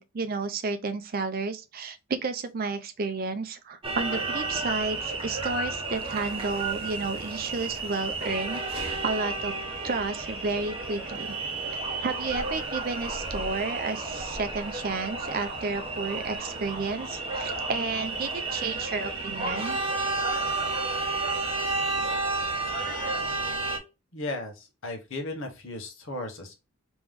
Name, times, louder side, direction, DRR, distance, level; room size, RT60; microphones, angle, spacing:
voice 1, 0.0-9.5 9.8-11.4 12.0-19.8, right 4 dB, 40° right, 0.5 m, -32 dB
sound 1, 3.8-23.8, right 3 dB, 25° right, 0.9 m, -31 dB
voice 2, 24.1-26.5, left 2 dB, 60° left, 1.2 m, -35 dB
3.4 x 3.0 x 3.6 m
head